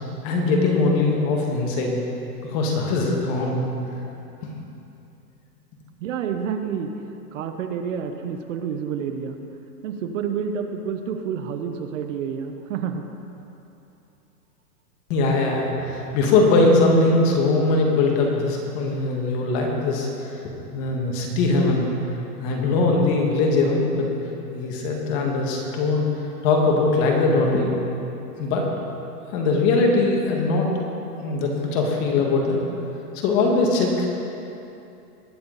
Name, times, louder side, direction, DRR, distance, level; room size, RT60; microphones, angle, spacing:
voice 1, 0.2-2.0 2.4-3.6 15.1-20.3 20.7-21.9 22.4-24.1 24.5-26.1 26.4-27.7 28.4-28.7 29.3-30.7 31.2-32.6 33.1-34.1, left 3 dB, 30° left, 0 dB, 1.8 m, -21 dB
voice 2, 6.0-6.9 7.3-9.4 9.8-13.1, right 7 dB, 55° right, 6 dB, 1.0 m, -29 dB
20.0 x 7.0 x 4.1 m, 2.8 s
hypercardioid pair, 155°, 47 cm